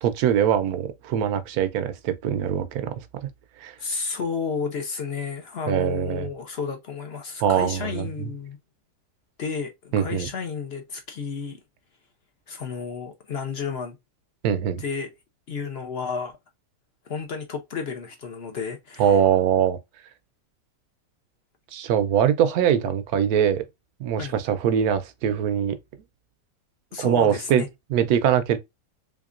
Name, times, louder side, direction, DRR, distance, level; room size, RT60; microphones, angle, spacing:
voice 1, 0.0-2.9 3.6-3.7 5.7-6.3 7.4-8.3 9.9-10.3 14.4-14.8 19.0-19.8 21.7-23.6 24.0-25.8 27.0-27.6 27.9-28.6, right 9 dB, 70° right, 1.0 m, -22 dB
voice 2, 3.8-8.6 9.4-11.6 12.5-14.0 14.8-15.1 15.5-16.4 17.1-19.1 24.2-24.3 26.9-27.7, left 5 dB, 55° left, 0.7 m, -32 dB
3.5 x 3.4 x 2.4 m
omnidirectional pair, 1.8 m